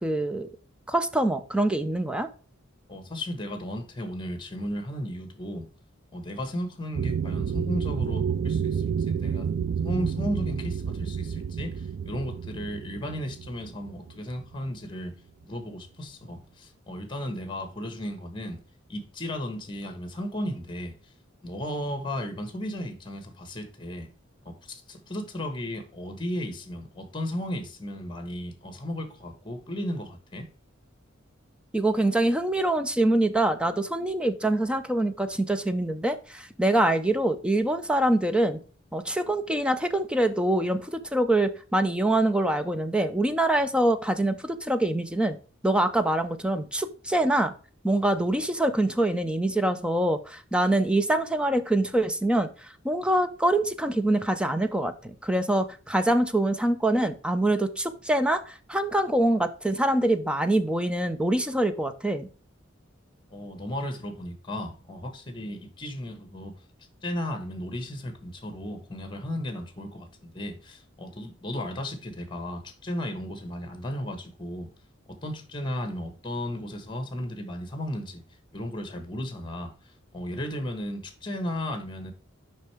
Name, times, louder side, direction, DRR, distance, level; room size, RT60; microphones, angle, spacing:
voice 1, 0.0-0.5 0.9-2.3 31.7-38.6 38.9-45.4 45.6-47.5 47.8-52.5 52.8-62.3, right 1 dB, 5° right, 0.6 m, -24 dB
voice 2, 2.9-5.7 6.1-9.5 9.8-15.1 15.4-18.6 18.9-20.9 21.4-24.1 24.4-30.5 63.3-66.5 67.0-74.7 75.2-78.2 78.5-79.7 80.1-82.1, equal, 25° left, 1.6 m, -35 dB
sound 1, 6.9-14.9, right 7 dB, 65° right, 0.3 m, -30 dB
6.6 x 5.5 x 3.5 m
head